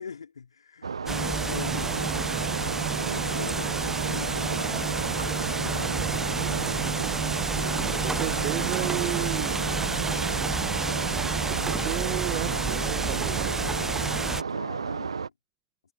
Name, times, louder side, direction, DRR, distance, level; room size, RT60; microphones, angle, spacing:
voice 1, 0.0-2.4 3.0-6.0 7.4-8.1 13.1-15.3, left 6 dB, 80° left, 4.9 m, -42 dB
sound 1, 0.8-15.3, right 5 dB, 80° right, 1.0 m, -32 dB
sound 2, 1.1-14.4, right 3 dB, 15° right, 0.5 m, -30 dB
voice 2, 7.5-9.6 11.3-13.5, right 24 dB, 50° right, 1.6 m, -33 dB
figure-of-eight pair, 70°, 3 cm